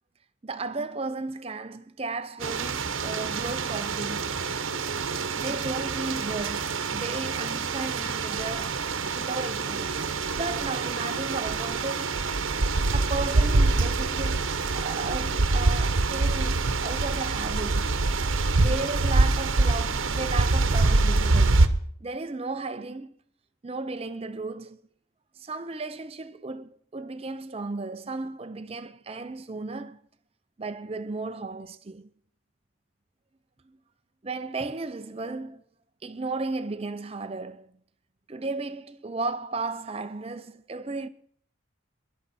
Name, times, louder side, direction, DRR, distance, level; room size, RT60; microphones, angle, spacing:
voice 1, 0.4-4.4 5.3-8.9 9.1-12.2 12.9-17.9 18.6-23.1 23.6-24.8 25.4-30.0 30.6-32.1 33.6-33.8 34.2-35.6 36.0-37.7 38.3-41.1, right 3 dB, 30° right, 0.6 m, -35 dB
sound 1, 2.4-21.7, right 3 dB, 80° right, 0.9 m, -25 dB
19.5 x 11.0 x 4.2 m
head